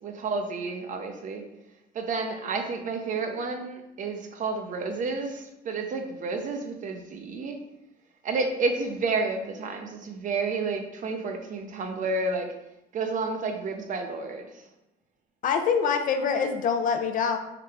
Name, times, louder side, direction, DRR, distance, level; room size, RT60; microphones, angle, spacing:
voice 1, 0.0-1.4 1.9-7.6 8.2-12.5 12.9-14.5, right 3 dB, 50° right, 5 dB, 0.6 m, -30 dB
voice 2, 15.4-17.4, left 6 dB, 50° left, 6 dB, 0.5 m, -25 dB
3.9 x 3.3 x 3.3 m, 0.90 s
cardioid pair, 110°, 17 cm